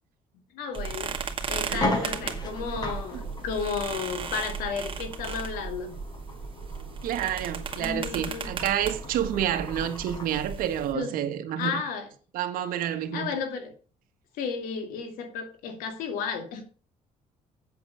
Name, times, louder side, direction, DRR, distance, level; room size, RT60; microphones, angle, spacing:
voice 1, 0.5-5.9 7.8-8.6 10.9-11.1 11.6-12.1 13.1-13.7 14.4-16.6, left 5 dB, 90° left, 2.8 m, -33 dB
sound 1, 0.7-0.9 1.3-1.4 1.7-10.4, left 2 dB, 30° left, 4.5 m, -37 dB
sound 2, 0.7-10.9, right 5 dB, 35° right, 2.1 m, -36 dB
voice 2, 1.7-2.0 7.0-11.8 12.3-13.3, right 10 dB, 80° right, 1.7 m, -29 dB
8.0 x 8.0 x 7.1 m
cardioid pair, 105°, 14 cm